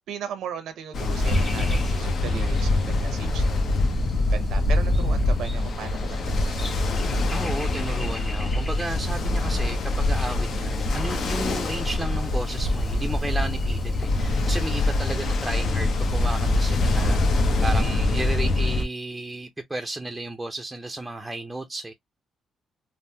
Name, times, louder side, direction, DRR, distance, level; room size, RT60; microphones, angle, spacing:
voice 1, 0.1-3.8 4.3-6.7, right 8 dB, 75° right, 0.6 m, -37 dB
Ocean, 0.9-18.8, left 2 dB, 60° left, 0.8 m, -24 dB
sound 1, 1.2-14.1, left 2 dB, 20° left, 1.4 m, -44 dB
voice 2, 7.3-21.9, right 2 dB, 10° right, 0.5 m, -33 dB
3.4 x 2.1 x 2.7 m
cardioid pair, 90°, 0 cm